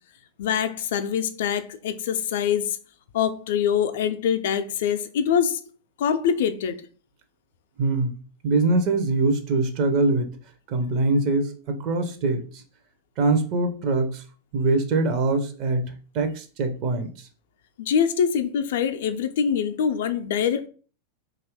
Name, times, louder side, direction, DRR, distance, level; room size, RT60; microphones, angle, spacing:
voice 1, 0.4-2.8 3.1-5.6 6.0-6.8 17.8-20.7, left 8 dB, 55° left, 0.4 m, -24 dB
voice 2, 7.8-8.1 8.4-10.4 10.7-12.6 13.2-14.2 14.5-17.3, right 3 dB, 40° right, 0.5 m, -23 dB
2.6 x 2.4 x 3.4 m
figure-of-eight pair, 90°, 0 cm